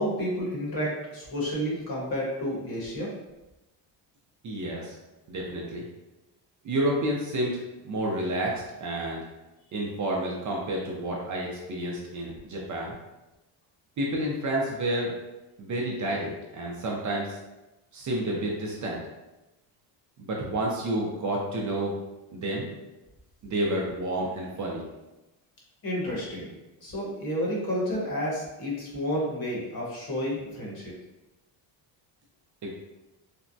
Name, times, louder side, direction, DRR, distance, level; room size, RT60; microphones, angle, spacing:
voice 1, 0.0-3.1 25.8-30.9, equal, 45° left, -4 dB, 1.3 m, -31 dB
voice 2, 4.4-4.9 5.3-5.8 6.6-9.2 9.7-13.0 14.0-15.1 15.6-17.4 17.9-19.0 20.2-21.9 22.3-22.7 23.4-24.8 32.6-32.7, right 1 dB, 40° right, -2 dB, 0.5 m, -30 dB
3.4 x 2.0 x 2.6 m, 1.0 s
cardioid pair, 115°, 49 cm